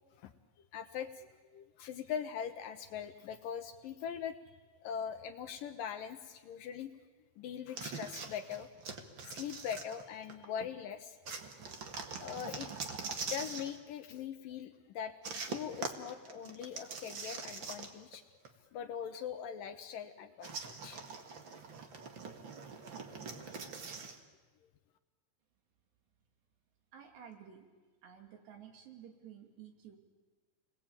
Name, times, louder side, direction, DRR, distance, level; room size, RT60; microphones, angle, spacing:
voice 1, 0.7-1.3 1.5-4.6 4.8-6.9 7.4-8.7 9.3-11.2 12.2-13.0 13.3-18.2 18.7-21.0 23.5-23.6, left 8 dB, 70° left, 8 dB, 2.3 m, -42 dB
sound 1, 7.8-10.5 11.2-13.8 15.2-18.2 18.4-18.5 20.4-24.2, right 4 dB, 50° right, 1.4 m, -43 dB
voice 2, 26.9-27.7 28.0-30.0, right 8 dB, 85° right, 4 dB, 5.0 m, -53 dB
29.5 x 20.5 x 8.9 m, 1.3 s
omnidirectional pair, 4.7 m